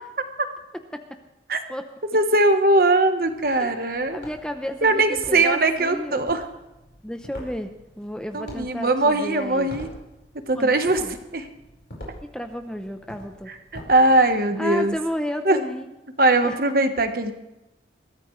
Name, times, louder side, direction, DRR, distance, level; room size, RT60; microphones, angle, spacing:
voice 1, 2.1-4.2 4.8-6.4 8.3-9.9 10.5-11.0 11.3-11.5 13.5-14.9 15.4-15.6 16.2-17.3, right 2 dB, 50° right, 7 dB, 1.1 m, -20 dB
sound 1, 3.2-15.0, equal, 65° left, 4.7 m, -45 dB
voice 2, 3.6-6.3 7.0-9.7 10.5-11.1 12.3-13.5 14.6-15.9 16.4-16.5, equal, 5° left, 6 dB, 0.7 m, -32 dB
21.5 x 14.0 x 3.2 m, 0.97 s
head